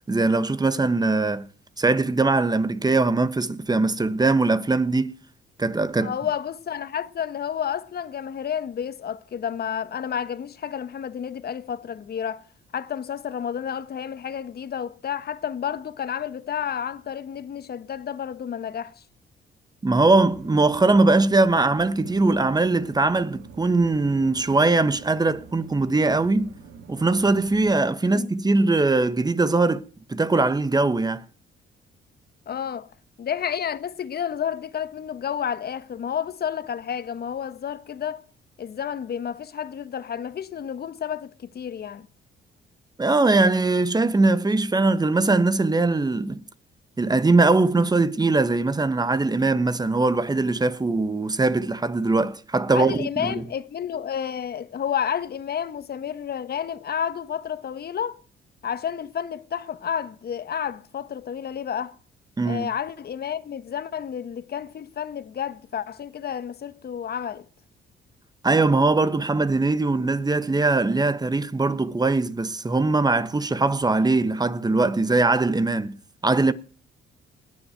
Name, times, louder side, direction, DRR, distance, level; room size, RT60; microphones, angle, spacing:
voice 1, 0.1-1.5 1.8-5.1 5.6-6.1 19.8-26.5 26.9-29.8 30.1-31.2 43.0-46.4 47.0-53.4 62.4-62.7 68.4-76.0 76.2-76.5, right 3 dB, 20° right, 1.2 m, -21 dB
voice 2, 6.0-12.4 12.7-19.0 28.0-28.3 32.5-32.9 33.2-38.2 38.6-42.1 52.7-58.2 58.6-61.9 62.4-67.4, left 8 dB, 50° left, 1.4 m, -30 dB
sound 1, 20.0-27.7, right 6 dB, 80° right, 2.6 m, -45 dB
19.5 x 7.2 x 9.1 m
cardioid pair, 90°, 20 cm